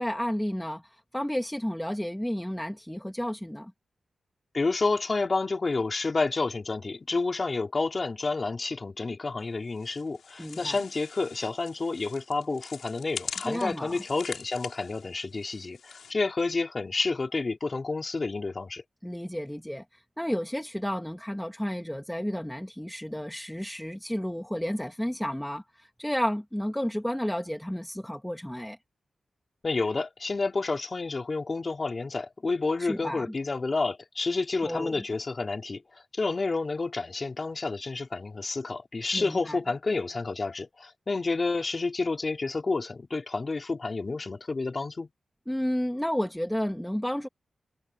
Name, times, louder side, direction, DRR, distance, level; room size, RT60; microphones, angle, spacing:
voice 1, 0.0-3.7 10.4-10.8 13.4-14.0 19.0-19.8 20.2-28.8 32.8-33.3 34.6-35.0 39.1-39.6 45.5-47.3, equal, 5° left, 1.8 m, -32 dB
voice 2, 4.5-18.8 29.6-35.8 36.1-45.1, left 3 dB, 35° left, 4.1 m, -30 dB
sound 1, 9.7-16.1, left 6 dB, 80° left, 5.2 m, -43 dB
wide cardioid pair, 145°, 0 cm